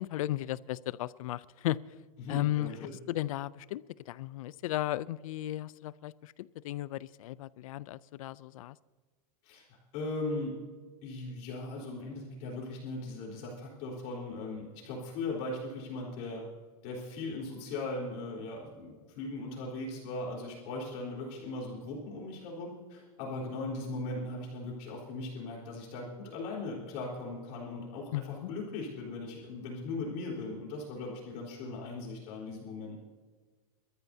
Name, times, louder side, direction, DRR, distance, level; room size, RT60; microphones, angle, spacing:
voice 1, 0.0-1.8 2.3-2.7 3.1-8.8 28.1-28.5, left 15 dB, 65° left, 20 dB, 0.4 m, -35 dB
voice 2, 2.2-2.9 9.4-10.6 11.0-16.4 16.8-33.0, left 2 dB, 40° left, -3 dB, 4.0 m, -39 dB
26.5 x 13.5 x 2.7 m, 1.4 s
supercardioid pair, 170°, 19 cm